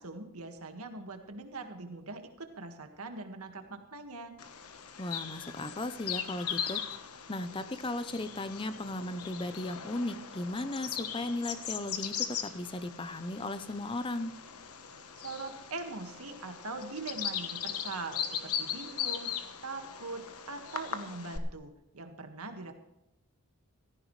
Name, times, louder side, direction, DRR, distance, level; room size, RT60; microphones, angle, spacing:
voice 1, 0.0-4.3 15.1-19.3 19.6-22.7, right 3 dB, 85° right, 5 dB, 1.8 m, -42 dB
Bird vocalization bird call bird song, 4.4-21.4, left 8 dB, 90° left, 1.3 m, -39 dB
voice 2, 5.0-7.0 7.3-14.3, left 2 dB, 25° left, 12 dB, 0.7 m, -36 dB
16.5 x 14.0 x 3.3 m, 0.94 s
head